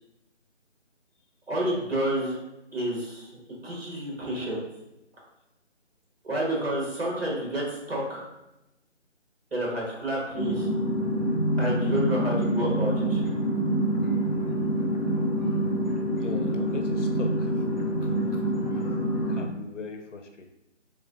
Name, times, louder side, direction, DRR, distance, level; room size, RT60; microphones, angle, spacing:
voice 1, 1.5-2.4 2.7-4.6 6.2-8.2 9.5-10.7 11.6-13.2, right 1 dB, 55° right, -3 dB, 1.5 m, -29 dB
sound 1, 10.3-19.4, right 1 dB, 40° left, 0.5 m, -26 dB
voice 2, 16.2-17.6 18.0-18.4 19.3-20.5, left 4 dB, 85° left, 4 dB, 0.7 m, -40 dB
3.4 x 3.1 x 2.6 m, 0.93 s
figure-of-eight pair, 180°, 36 cm